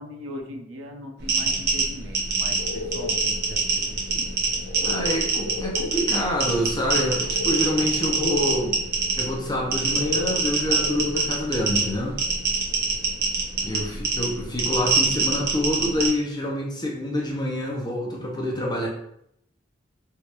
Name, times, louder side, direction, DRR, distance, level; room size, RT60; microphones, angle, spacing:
voice 1, 0.0-4.3 13.6-13.9, equal, 75° right, 4 dB, 0.5 m, -40 dB
sound 1, 1.2-16.1, right 4 dB, 55° right, 0.9 m, -25 dB
sound 2, 2.5-13.6 14.0-14.1, left 4 dB, 75° left, 0.4 m, -36 dB
voice 2, 4.8-8.8 9.2-12.2 13.6-18.9, left 1 dB, 20° left, -1 dB, 0.7 m, -27 dB
3.2 x 2.5 x 2.9 m, 0.72 s
head